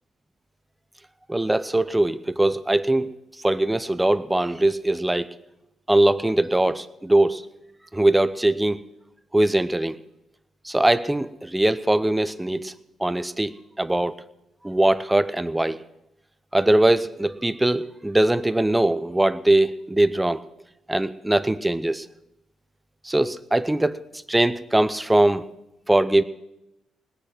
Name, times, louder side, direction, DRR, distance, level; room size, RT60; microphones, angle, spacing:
voice 1, 1.3-3.1 3.4-5.3 5.9-7.4 7.9-8.9 9.3-10.0 10.6-12.7 13.0-14.2 14.6-15.8 16.5-20.4 20.9-22.1 23.0-25.5 25.9-26.2, right 1 dB, 10° right, 14 dB, 0.7 m, -21 dB
18.5 x 10.0 x 6.1 m, 0.88 s
cardioid pair, 90°, 0 cm